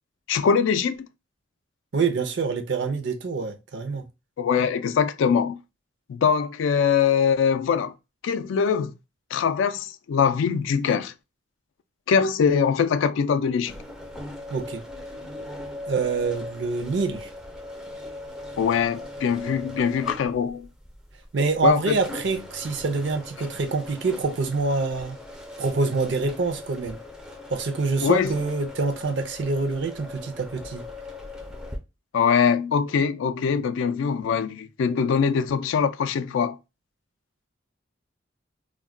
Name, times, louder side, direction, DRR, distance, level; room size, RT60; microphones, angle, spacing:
voice 1, 0.3-1.1 4.4-5.6 6.1-7.9 8.2-8.9 9.3-11.1 12.1-13.7 18.6-20.7 21.6-22.0 28.0-28.3 32.1-36.6, left 6 dB, 75° left, 0.3 m, -22 dB
voice 2, 1.9-4.1 14.5-14.8 15.9-17.3 21.3-25.2 25.6-27.0 27.5-30.8, right 4 dB, 60° right, 0.5 m, -26 dB
sound 1, 13.7-31.8, left 2 dB, 5° right, 0.4 m, -39 dB
2.3 x 2.1 x 3.5 m
head